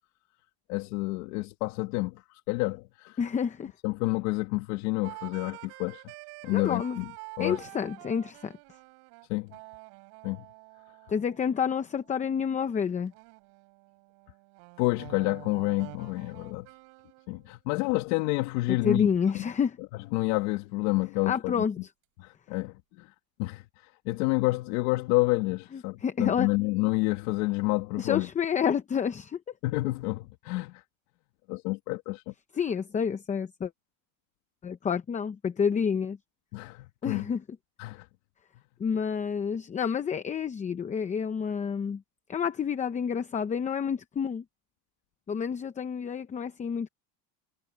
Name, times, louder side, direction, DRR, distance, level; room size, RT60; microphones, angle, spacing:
voice 1, 0.7-3.2 3.8-6.1 6.4-7.1 7.4-7.6 9.3-9.6 10.2-10.4 14.8-16.7 17.3-19.1 19.3-19.5 20.1-21.6 22.2-23.1 23.4-28.3 29.6-30.8 31.5-32.3 36.5-37.3 37.8-38.1, left 22 dB, 90° left, 1.8 m, -29 dB
voice 2, 3.2-3.7 6.5-7.0 7.4-8.5 11.1-13.1 18.7-19.8 21.3-21.8 26.0-26.5 28.0-29.4 32.5-33.7 34.6-36.2 37.0-37.4 38.8-42.0 42.3-44.4 45.3-46.9, left 7 dB, 15° left, 0.7 m, -29 dB
sound 1, 5.0-12.4 13.1-17.6, right 37 dB, 80° right, 6.2 m, -48 dB
cardioid pair, 160°, 46 cm